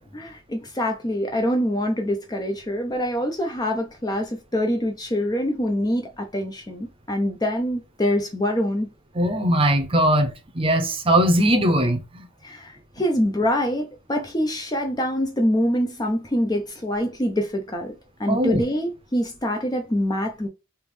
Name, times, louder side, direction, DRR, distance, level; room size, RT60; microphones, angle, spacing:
voice 1, 0.1-8.9 12.4-20.5, equal, 20° left, 0.5 m, -25 dB
voice 2, 9.2-12.0 18.3-18.6, right 1 dB, 25° right, 0.7 m, -20 dB
3.4 x 3.0 x 3.2 m
head